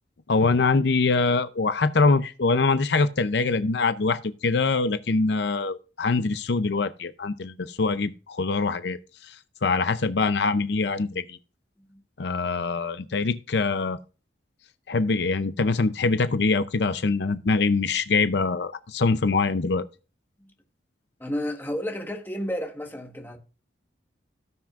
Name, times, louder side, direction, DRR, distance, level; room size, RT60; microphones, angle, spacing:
voice 1, 0.3-11.4 12.2-14.0 14.9-19.9, left 4 dB, 65° left, 0.6 m, -24 dB
voice 2, 21.2-23.4, equal, 10° left, 1.3 m, -31 dB
17.5 x 6.0 x 2.4 m
head